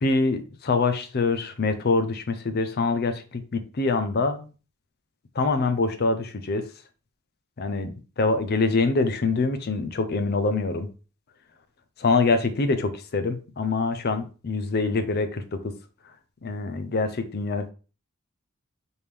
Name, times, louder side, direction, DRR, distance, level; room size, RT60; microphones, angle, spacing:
voice 1, 0.0-4.5 5.3-6.7 7.6-10.9 12.0-15.4 16.4-17.7, left 3 dB, 50° left, 9 dB, 0.5 m, -25 dB
4.4 x 3.4 x 3.4 m, 0.34 s
head